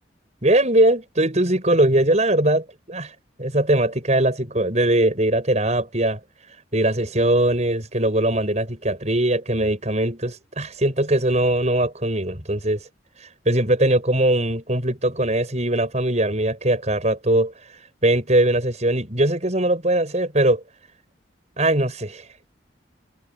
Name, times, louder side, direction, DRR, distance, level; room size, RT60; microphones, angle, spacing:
voice 1, 0.4-3.1 3.4-6.2 6.7-12.8 13.5-17.5 18.0-20.6 21.6-22.2, right 1 dB, 40° right, 7.2 m, -20 dB
head